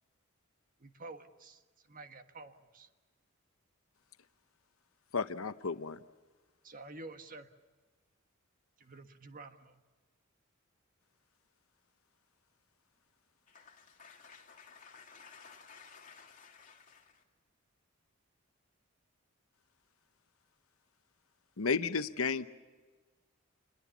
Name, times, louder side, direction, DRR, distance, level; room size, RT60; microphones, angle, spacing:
voice 1, 0.8-1.6 1.9-2.9 6.6-7.5 8.8-9.8, right 2 dB, 40° right, 1.6 m, -49 dB
voice 2, 5.1-6.0 21.6-22.5, left 5 dB, 85° left, 0.9 m, -32 dB
voice 3, 13.5-17.2, left 6 dB, 40° left, 3.1 m, -55 dB
27.5 x 22.0 x 7.2 m
head